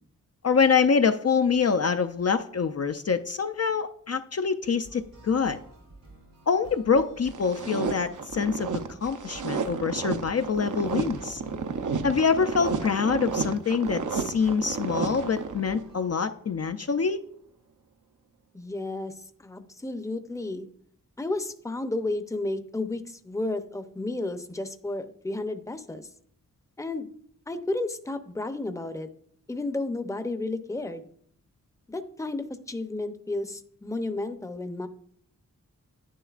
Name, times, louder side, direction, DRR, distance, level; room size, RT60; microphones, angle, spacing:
voice 1, 0.4-5.6 6.5-8.7 9.0-11.4 12.0-17.2, left 5 dB, 50° left, 7 dB, 0.5 m, -25 dB
sound 1, 4.8-16.1, right 2 dB, 85° right, 2.8 m, -51 dB
sound 2, 7.3-15.9, right 5 dB, 65° right, 0.7 m, -32 dB
voice 2, 18.5-20.7 21.2-26.1 26.8-27.1 27.5-29.1 29.5-31.0 31.9-34.9, left 2 dB, 10° left, 9 dB, 0.6 m, -32 dB
10.0 x 10.0 x 2.4 m, 0.63 s
wide cardioid pair, 80°, 32 cm